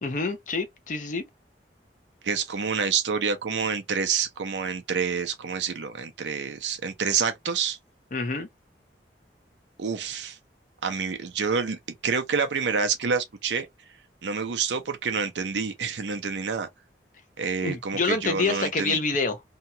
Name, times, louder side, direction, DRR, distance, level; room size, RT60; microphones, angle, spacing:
voice 1, 0.0-1.2 8.1-8.5 17.6-19.4, left 3 dB, 45° left, 0.5 m, -27 dB
voice 2, 2.2-7.8 9.8-10.4 10.8-13.7 14.2-16.7 17.4-19.0, right 5 dB, 85° right, 0.6 m, -28 dB
2.8 x 2.3 x 2.7 m
head